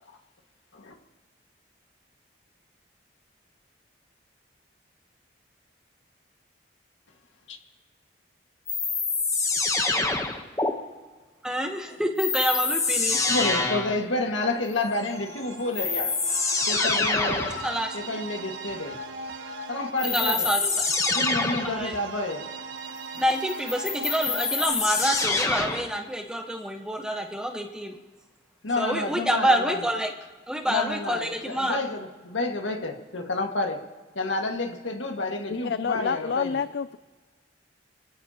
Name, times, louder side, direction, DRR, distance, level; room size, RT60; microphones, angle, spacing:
sound 1, 8.7-10.7 12.2-14.0 15.3-15.4 15.7-17.6 20.0-21.8 23.5-25.9, left 3 dB, 15° left, 1.0 m, -26 dB
voice 1, 9.8-10.1 11.4-13.2 17.6-17.9 20.1-20.9 21.6-22.0 23.2-28.0 28.8-30.1 30.5-31.8, equal, 5° right, 3 dB, 1.0 m, -27 dB
voice 2, 13.3-16.2 16.6-19.0 19.7-20.5 21.1-22.5 28.6-29.9 30.7-33.9 34.2-36.5, left 2 dB, 85° left, 3 dB, 1.8 m, -29 dB
sound 2, 15.1-24.7, right 3 dB, 80° right, 1.2 m, -39 dB
voice 3, 35.5-37.0, left 6 dB, 60° left, 13 dB, 0.3 m, -28 dB
26.5 x 16.0 x 2.9 m, 1.3 s
head